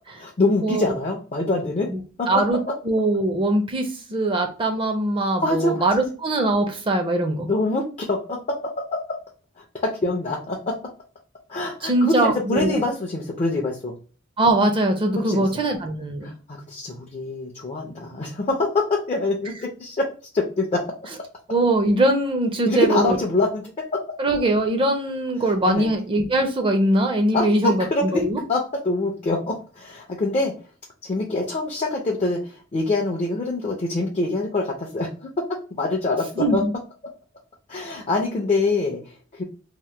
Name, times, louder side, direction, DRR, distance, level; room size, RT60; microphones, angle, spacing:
voice 1, 0.2-1.9 2.2-2.4 5.2-5.9 7.4-9.2 9.6-10.8 11.5-13.9 15.2-15.5 16.2-20.0 20.3-20.9 22.7-24.0 25.7-25.9 27.3-28.2 28.5-30.5 31.0-35.3 35.7-36.6 37.7-39.4, left 2 dB, 30° left, 0 dB, 0.5 m, -25 dB
voice 2, 2.3-2.6 2.9-7.5 11.8-12.7 14.4-16.3 21.5-23.2 24.2-27.8 28.1-28.4 36.4-36.7, right 1 dB, 25° right, 5 dB, 0.5 m, -21 dB
2.8 x 2.1 x 3.1 m, 0.36 s
head